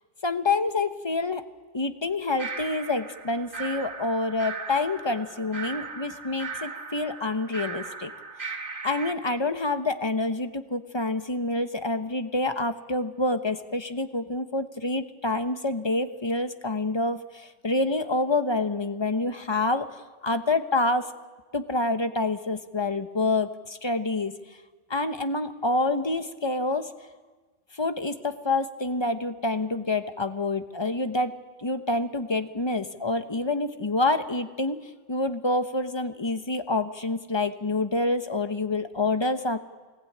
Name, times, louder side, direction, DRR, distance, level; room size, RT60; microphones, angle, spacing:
voice 1, 0.2-1.5 1.7-8.1 8.4-19.9 20.2-21.1 21.5-24.4 24.9-26.9 27.7-39.6, left 2 dB, 25° left, 9 dB, 1.0 m, -27 dB
sound 1, 2.4-9.1, right 4 dB, 45° right, 2.0 m, -38 dB
24.0 x 19.5 x 8.8 m, 1.4 s
omnidirectional pair, 1.3 m